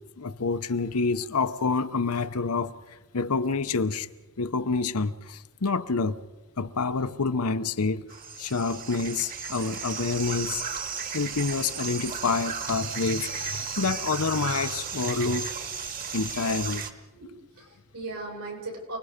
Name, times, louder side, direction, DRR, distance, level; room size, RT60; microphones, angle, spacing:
voice 1, 0.2-2.7 3.1-4.1 4.4-6.2 6.6-8.0 8.4-10.6 11.1-15.5 16.1-16.9, left 4 dB, 85° left, 0.9 m, -27 dB
sound 1, 8.1-16.9, right 6 dB, 40° right, 1.4 m, -34 dB
voice 2, 17.1-19.0, right 2 dB, 85° right, 7.4 m, -38 dB
28.5 x 20.5 x 5.2 m
head